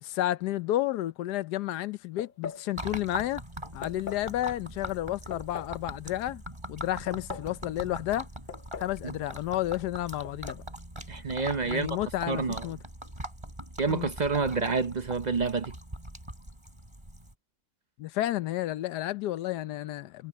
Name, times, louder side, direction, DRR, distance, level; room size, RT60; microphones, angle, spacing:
voice 1, 0.0-3.4 3.7-6.4 6.7-8.3 8.8-10.6 11.6-12.8 13.9-14.1 18.0-20.3, left 14 dB, 80° left, 1.2 m, -31 dB
sound 1, 2.2-2.7 3.8-4.3 5.3-5.8 6.8-7.5 8.5-9.0 9.3-9.4 10.2-10.7, left 7 dB, 50° left, 0.6 m, -40 dB
Gurgling / Liquid, 2.8-17.3, equal, 15° right, 4.8 m, -42 dB
voice 2, 11.1-12.0 12.3-12.7 13.8-15.8, right 4 dB, 50° right, 0.5 m, -28 dB
omnidirectional pair, 1.7 m